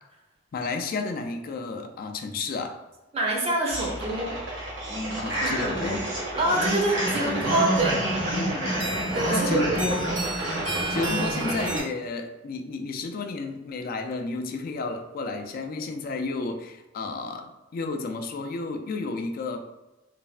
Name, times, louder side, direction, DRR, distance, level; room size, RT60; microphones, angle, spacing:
voice 1, 0.5-2.8 5.2-6.1 8.3-8.9 9.3-10.1 10.9-19.6, left 3 dB, 50° left, 5 dB, 0.3 m, -32 dB
voice 2, 3.1-4.4 5.4-5.9 6.4-8.0 9.1-9.8 10.0-10.2 10.8-11.0, right 2 dB, 35° right, -1 dB, 0.5 m, -26 dB
sound 1, 3.7-11.8, right 1 dB, 85° right, 1.2 m, -28 dB
3.3 x 2.0 x 2.4 m, 1.0 s
head